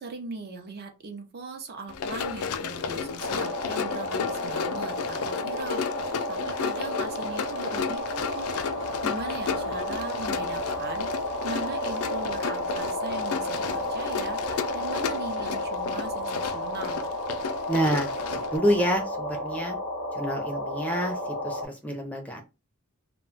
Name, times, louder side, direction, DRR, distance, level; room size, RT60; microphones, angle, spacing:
voice 1, 0.0-17.0, right 3 dB, 45° right, 0.5 m, -40 dB
Run, 1.9-18.6, left 6 dB, 90° left, 0.4 m, -33 dB
sound 1, 3.2-21.6, left 1 dB, 75° right, 1.1 m, -32 dB
voice 2, 17.7-19.8 20.1-22.4, equal, 5° left, 0.5 m, -28 dB
2.2 x 2.1 x 3.8 m
head